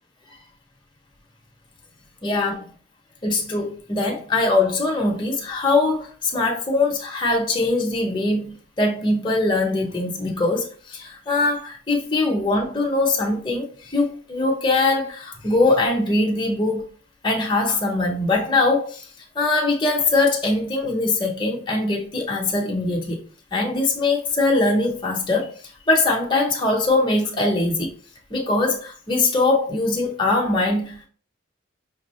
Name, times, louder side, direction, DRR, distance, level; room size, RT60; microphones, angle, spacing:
voice 1, 2.2-2.6 3.2-16.8 17.2-19.1 19.3-23.2 23.5-25.5 25.9-27.9 28.3-31.1, left 2 dB, 20° left, 0.7 m, -22 dB
5.2 x 2.4 x 3.0 m
head